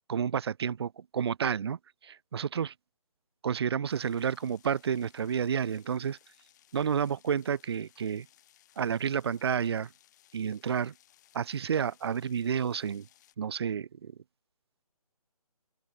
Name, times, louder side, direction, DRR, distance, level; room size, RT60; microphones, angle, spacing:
voice 1, 0.1-2.7 3.4-6.2 6.7-8.3 8.8-9.9 10.3-10.9 11.3-13.1 13.4-14.1, right 7 dB, 40° right, 0.8 m, -30 dB
sound 1, 3.9-13.3, left 13 dB, 30° left, 7.8 m, -63 dB
open air
figure-of-eight pair, 150°, 20 cm